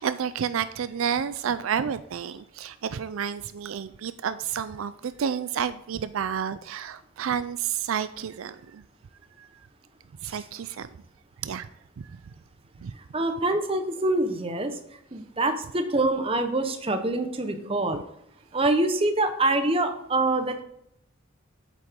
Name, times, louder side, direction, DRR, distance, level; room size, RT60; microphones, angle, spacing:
voice 1, 0.0-8.8 9.4-9.5 10.2-10.9 11.4-11.7 12.0-12.3 12.8-12.9, right 7 dB, 75° right, 13 dB, 0.4 m, -30 dB
voice 2, 13.1-14.8 15.1-18.0 18.5-20.6, right 2 dB, 25° right, 7 dB, 1.0 m, -25 dB
8.7 x 7.5 x 3.7 m, 0.74 s
head